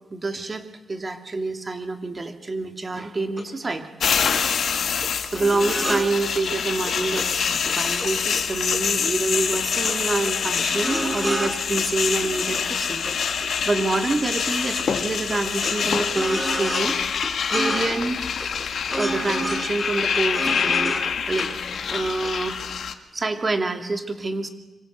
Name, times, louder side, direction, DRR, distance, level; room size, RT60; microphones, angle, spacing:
voice 1, 0.1-0.6 0.9-3.9 4.3-4.5 5.0-13.1 13.7-17.0 17.5-18.2 19.0-21.0 21.3-21.5 21.9-22.6 23.1-24.5, right 3 dB, 35° right, 7 dB, 2.4 m, -27 dB
sound 1, 3.4-3.5 3.7-3.8 4.0-4.6 4.8-5.1 5.3-6.1 6.3-6.4 6.7-7.2 7.5-9.1 9.3-9.6 9.8-9.9 10.2-11.5 11.8-12.6 13.0-14.2 14.4-14.5 14.8-16.9 17.2-18.1 18.4-21.1 21.4-21.5 21.7-22.3 22.6-22.7, equal, 10° right, 4.7 m, -30 dB
sound 2, 4.0-22.9, left 7 dB, 75° left, 1.8 m, -26 dB
25.5 x 23.0 x 8.1 m, 1.2 s
cardioid pair, 100°, 0 cm